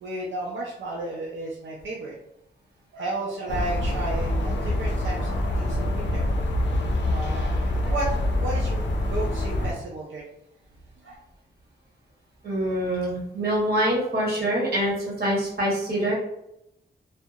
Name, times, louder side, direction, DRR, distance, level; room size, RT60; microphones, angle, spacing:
voice 1, 0.0-2.2 2.9-6.3 7.1-8.1 8.4-10.2 11.0-11.1, right 2 dB, 80° right, -4 dB, 0.5 m, -33 dB
sound 1, 3.5-9.7, left 1 dB, 70° left, 0.5 m, -25 dB
voice 2, 12.4-16.1, right 1 dB, 55° right, -4 dB, 1.1 m, -25 dB
2.7 x 2.0 x 2.3 m, 0.81 s
wide cardioid pair, 95°, 19 cm